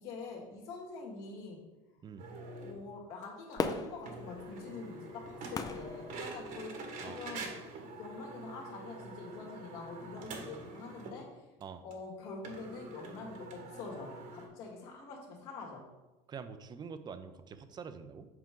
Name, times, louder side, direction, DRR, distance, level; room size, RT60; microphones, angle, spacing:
voice 1, 0.0-1.6 2.6-7.6 8.0-11.4 11.8-15.9, left 3 dB, 70° left, -2 dB, 2.2 m, -45 dB
sound 1, 2.2-2.8 3.2-3.3 3.5-3.6 4.0-11.2 11.6-11.7 11.9-12.0 12.4-14.5, right 2 dB, 55° right, 1.4 m, -45 dB
Fireworks, 3.6-6.9 7.5-7.6, left 4 dB, 25° left, 0.5 m, -39 dB
voice 2, 16.3-18.3, right 6 dB, 25° right, 10 dB, 0.6 m, -45 dB
7.5 x 4.5 x 3.8 m, 1.1 s
supercardioid pair, 115°, 16 cm